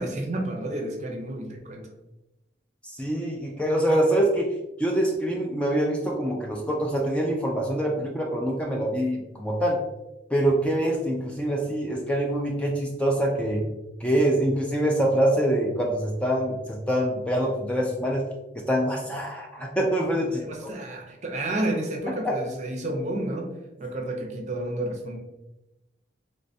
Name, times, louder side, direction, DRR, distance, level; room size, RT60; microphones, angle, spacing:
voice 1, 0.0-1.9 20.2-23.5 23.8-25.2, right 1 dB, 40° right, 2 dB, 0.6 m, -31 dB
voice 2, 2.8-4.5 4.8-9.8 10.3-13.6 14.0-18.3 18.5-20.4, right 1 dB, 5° left, -1 dB, 0.4 m, -25 dB
3.2 x 3.2 x 2.7 m, 0.99 s
head